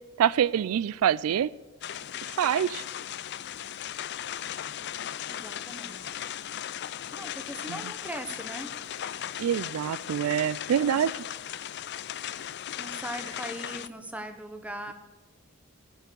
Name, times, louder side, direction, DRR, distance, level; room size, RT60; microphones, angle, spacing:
voice 1, 0.2-1.5 2.3-2.8 7.7-7.9 9.4-11.2, right 9 dB, 85° right, 0.3 m, -26 dB
sound 1, 1.8-13.9, left 10 dB, 50° left, 0.4 m, -37 dB
voice 2, 5.3-6.1 7.1-8.7 12.8-14.9, right 1 dB, 5° right, 1.1 m, -39 dB
11.5 x 9.2 x 6.9 m
head